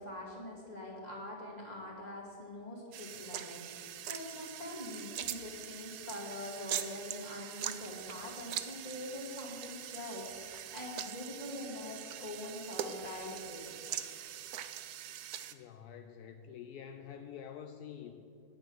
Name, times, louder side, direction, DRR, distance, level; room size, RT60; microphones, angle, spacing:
voice 1, 0.0-13.7, left 1 dB, 25° left, -4 dB, 2.4 m, -44 dB
sound 1, 2.9-15.5, right 10 dB, 80° right, 1.1 m, -42 dB
voice 2, 15.5-18.2, left 8 dB, 80° left, 6 dB, 1.1 m, -47 dB
9.5 x 9.1 x 6.3 m, 2.7 s
omnidirectional pair, 1.7 m